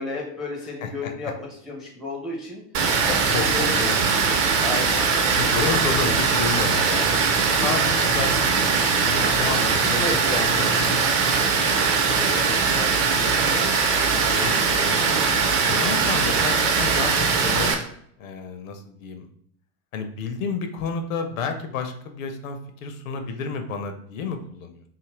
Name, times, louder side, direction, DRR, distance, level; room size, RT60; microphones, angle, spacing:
voice 1, 0.0-1.3 1.6-2.6 3.0-3.9 4.3-5.0 9.9-10.8 11.8-13.7, left 2 dB, ahead, -2 dB, 0.4 m, -33 dB
voice 2, 0.8-1.3 3.3-3.9 5.3-7.2 7.6-11.1 14.1-15.1 15.7-17.7 18.2-19.3 19.9-24.8, left 5 dB, 60° left, 6 dB, 0.6 m, -31 dB
Water, 2.7-17.7, right 5 dB, 40° right, 0.6 m, -21 dB
2.6 x 2.4 x 3.0 m, 0.66 s
figure-of-eight pair, 90°, 46 cm